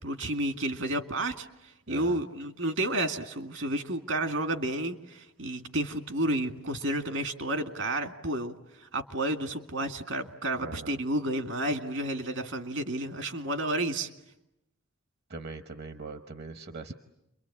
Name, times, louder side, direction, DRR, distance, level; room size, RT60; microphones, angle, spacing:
voice 1, 0.0-14.1, right 1 dB, 75° right, 7 dB, 2.2 m, -31 dB
voice 2, 1.9-2.2 10.6-11.0 15.3-16.9, right 3 dB, 55° right, 8 dB, 1.0 m, -41 dB
29.5 x 23.5 x 8.7 m, 0.83 s
head